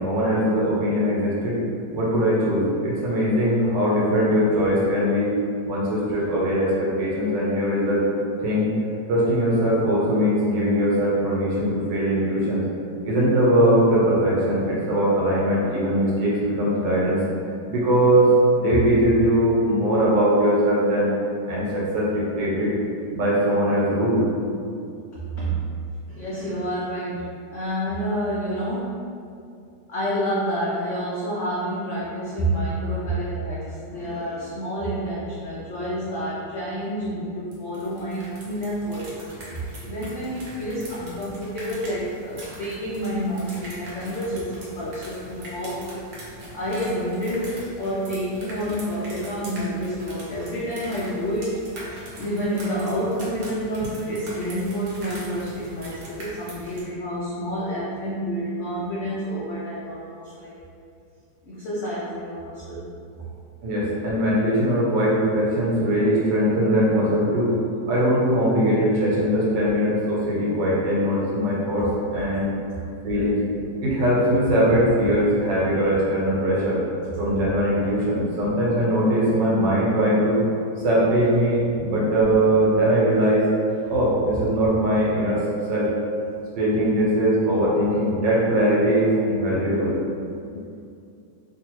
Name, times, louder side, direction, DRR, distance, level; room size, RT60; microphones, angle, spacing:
voice 1, 0.0-1.6 1.9-5.3 5.6-8.0 8.4-8.7 9.1-12.6 13.0-17.2 17.7-21.1 21.5-22.7 23.1-24.2 63.6-67.5 67.9-72.5 73.0-73.4 73.8-76.8 77.2-80.4 80.8-83.5 83.9-85.4 85.7-85.9 86.5-90.0, equal, 90° right, -6 dB, 1.5 m, -21 dB
voice 2, 25.1-25.7 26.1-29.0 29.9-46.0 46.3-51.6 51.9-60.6 61.4-62.9, equal, 85° left, -7 dB, 0.6 m, -29 dB
sound 1, 37.5-56.8, right 1 dB, 60° right, 1.0 m, -41 dB
3.4 x 2.4 x 3.0 m, 2.4 s
omnidirectional pair, 1.9 m